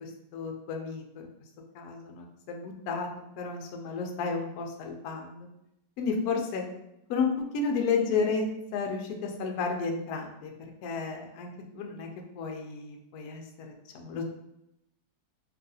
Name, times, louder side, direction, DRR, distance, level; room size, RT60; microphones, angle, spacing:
voice 1, 0.0-1.3 1.7-3.1 3.4-5.5 6.0-6.6 7.1-10.5 10.8-12.1 12.3-14.2, left 4 dB, 75° left, 2 dB, 0.8 m, -32 dB
3.0 x 2.6 x 2.6 m, 0.83 s
omnidirectional pair, 2.1 m